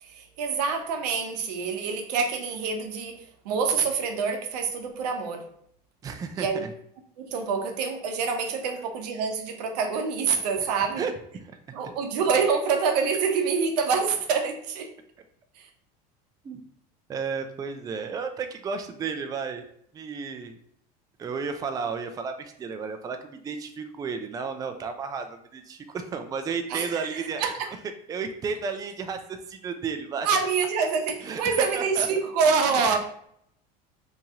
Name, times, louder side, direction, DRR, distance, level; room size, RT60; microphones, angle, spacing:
voice 1, 0.0-5.5 6.4-6.6 7.2-11.1 11.7-14.9 15.6-15.7 26.7-27.7 30.2-33.0, right 5 dB, 90° right, 4 dB, 0.7 m, -26 dB
voice 2, 6.0-6.7 10.6-10.7 11.0-11.1 11.4-11.5 11.8-11.9 16.4-16.6 17.1-19.6 19.9-20.6 21.2-27.4 28.1-30.3 31.2-32.1 32.7-33.0, right 5 dB, 20° right, 7 dB, 0.3 m, -33 dB
2.9 x 2.7 x 3.5 m, 0.69 s
supercardioid pair, 110°, 20 cm